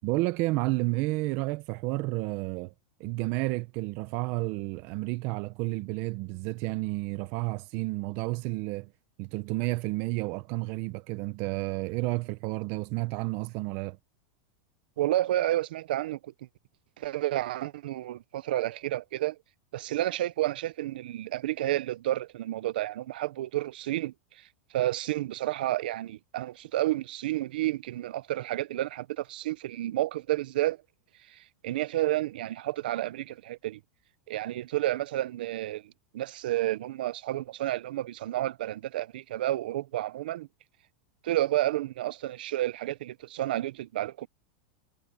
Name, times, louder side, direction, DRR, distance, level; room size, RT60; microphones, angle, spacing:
voice 1, 0.0-2.7 3.0-8.9 9.2-14.0, right 21 dB, 45° right, 1.0 m, -31 dB
voice 2, 15.0-16.3 17.0-19.4 19.7-24.5 24.7-30.8 31.3-33.8 34.3-40.5 41.2-44.3, right 15 dB, 80° right, 0.8 m, -30 dB
supercardioid pair, 155°, 5 cm